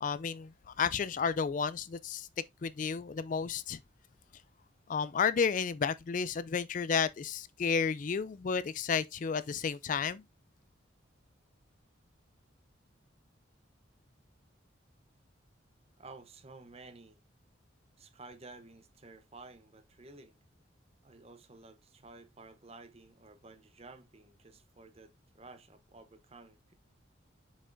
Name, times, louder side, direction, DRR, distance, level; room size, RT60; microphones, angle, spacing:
voice 1, 0.0-2.3 2.6-3.8 4.9-10.2, left 6 dB, 40° left, 0.3 m, -32 dB
voice 2, 16.0-17.2 18.0-20.4 21.0-26.7, right 3 dB, 30° right, 0.8 m, -53 dB
7.2 x 5.4 x 2.5 m
head